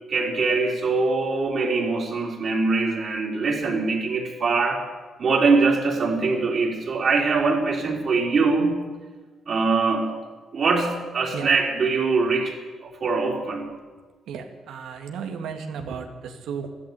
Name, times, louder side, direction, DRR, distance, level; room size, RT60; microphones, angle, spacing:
voice 1, 0.1-4.8 5.2-8.8 9.5-10.2 10.5-12.6 12.8-13.7, right 4 dB, 50° right, -2 dB, 3.7 m, -23 dB
voice 2, 14.3-16.7, right 6 dB, 80° right, 5 dB, 2.0 m, -34 dB
14.0 x 12.5 x 8.3 m, 1.4 s
cardioid pair, 90°, 0 cm